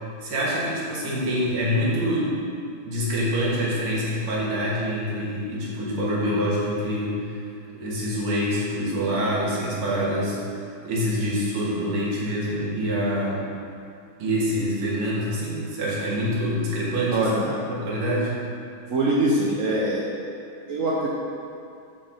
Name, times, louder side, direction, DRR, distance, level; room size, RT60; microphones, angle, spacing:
voice 1, 0.2-2.4 2.8-7.4 7.7-13.4 14.2-18.3, equal, 90° right, -6 dB, 2.4 m, -26 dB
voice 2, 17.1-17.5 18.9-20.0 20.7-21.1, right 1 dB, 75° right, -4 dB, 0.7 m, -23 dB
6.3 x 6.0 x 4.9 m, 2.4 s
omnidirectional pair, 2.3 m